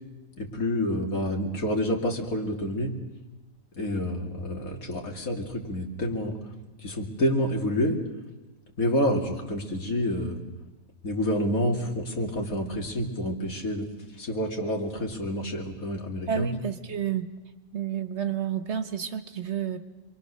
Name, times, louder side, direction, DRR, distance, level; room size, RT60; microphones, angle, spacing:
voice 1, 0.4-3.0 3.8-6.4 6.8-8.0 8.8-10.4 11.0-13.9 14.2-16.6, equal, 85° left, 2 dB, 3.0 m, -28 dB
voice 2, 16.3-17.3 17.7-19.8, right 9 dB, 55° right, 10 dB, 1.3 m, -30 dB
27.0 x 23.5 x 6.7 m, 1.1 s
omnidirectional pair, 1.5 m